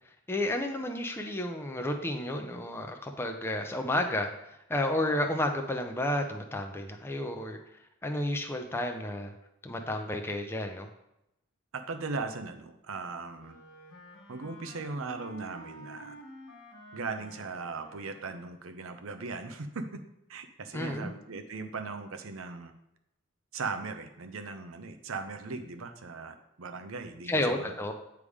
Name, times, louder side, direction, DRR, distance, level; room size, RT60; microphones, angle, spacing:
voice 1, 0.3-7.6 8.0-9.3 9.6-10.9 20.7-21.1 27.3-27.9, left 1 dB, 10° left, 3 dB, 0.5 m, -31 dB
voice 2, 11.7-13.6 14.3-16.1 16.9-20.0 20.3-22.7 23.5-27.8, right 4 dB, 70° right, 8 dB, 0.7 m, -38 dB
Wind instrument woodwind instrument, 13.4-18.7, equal, 70° left, 1.6 m, -50 dB
8.3 x 3.6 x 4.9 m, 0.86 s
head